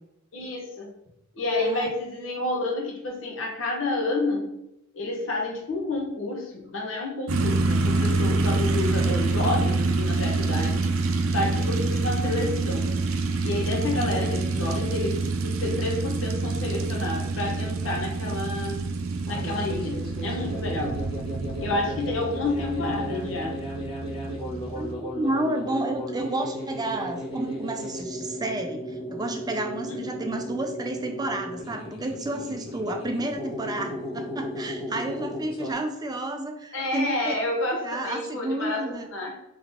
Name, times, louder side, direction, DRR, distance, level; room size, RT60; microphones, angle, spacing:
voice 1, 0.3-0.9 1.4-4.5 4.9-10.9 11.3-12.9 13.4-18.9 19.3-21.0 21.6-23.6 29.9-30.1 36.7-39.3, left 2 dB, 70° left, -1 dB, 1.1 m, -29 dB
sound 1, 7.3-24.9, right 3 dB, 90° right, 0.5 m, -27 dB
sound 2, 19.2-35.7, equal, 25° left, 0.9 m, -35 dB
voice 2, 24.7-37.3 37.8-39.1, right 2 dB, 20° right, 5 dB, 0.5 m, -31 dB
3.7 x 3.4 x 3.6 m, 0.84 s
head